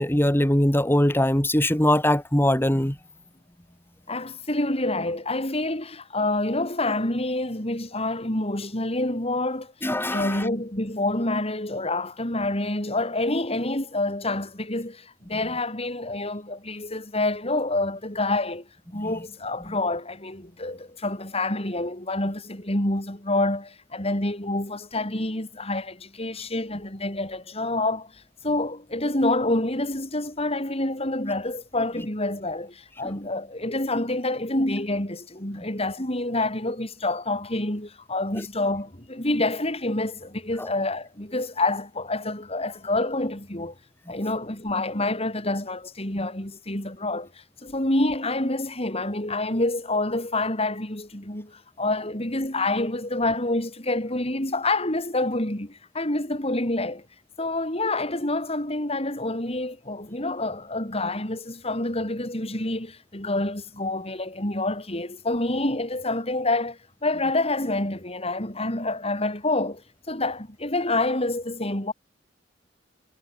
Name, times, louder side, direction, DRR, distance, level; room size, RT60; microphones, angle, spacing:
voice 1, 0.0-3.0 9.8-10.4 33.0-33.1 40.6-40.7, left 1 dB, 10° left, 2.6 m, -21 dB
voice 2, 4.1-9.7 10.1-28.1 28.4-43.7 44.1-47.3 47.6-57.0 57.4-69.8 70.1-71.9, left 2 dB, 35° left, 5.9 m, -27 dB
head